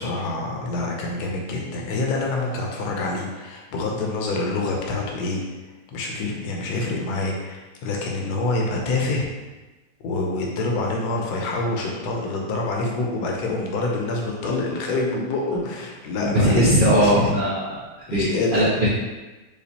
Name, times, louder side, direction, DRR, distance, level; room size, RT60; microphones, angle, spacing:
voice 1, 0.0-5.4 5.9-9.3 10.0-16.7 17.0-17.2 18.1-18.9, left 2 dB, 75° left, -1 dB, 1.2 m, -26 dB
voice 2, 16.2-17.8 18.1-18.9, equal, 70° right, -8 dB, 0.4 m, -19 dB
5.0 x 2.3 x 2.8 m, 1.2 s
omnidirectional pair, 1.7 m